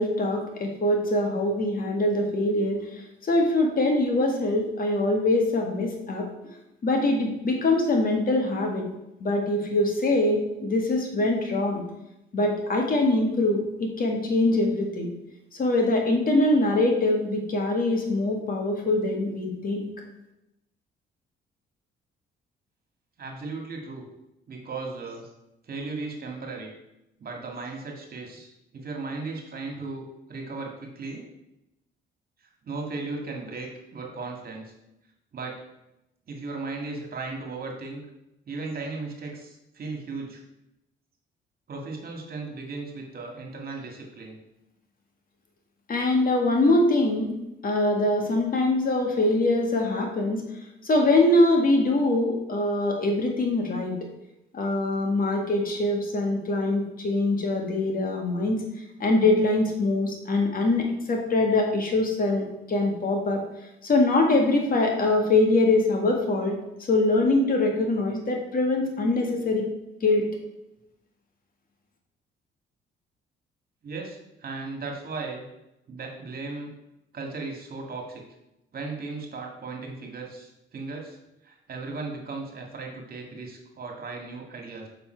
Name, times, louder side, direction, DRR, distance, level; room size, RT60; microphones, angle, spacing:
voice 1, 0.0-2.8 3.2-6.3 6.8-8.9 9.2-11.8 12.3-15.1 15.6-19.9 45.9-47.3 47.6-50.4 50.8-53.9 54.5-58.6 59.0-63.4 63.8-66.6 66.9-69.7 70.0-70.3, left 2 dB, 45° left, 1 dB, 1.8 m, -23 dB
voice 2, 23.2-24.0 24.5-25.3 25.7-26.7 27.2-31.2 32.6-34.7 35.3-35.6 36.3-38.0 38.5-40.4 41.7-44.4 73.8-75.4 75.9-76.7 77.1-78.2 78.7-81.2 81.4-84.9, right 3 dB, 50° right, 1 dB, 2.1 m, -36 dB
7.1 x 5.9 x 4.5 m, 0.88 s
cardioid pair, 90°, 20 cm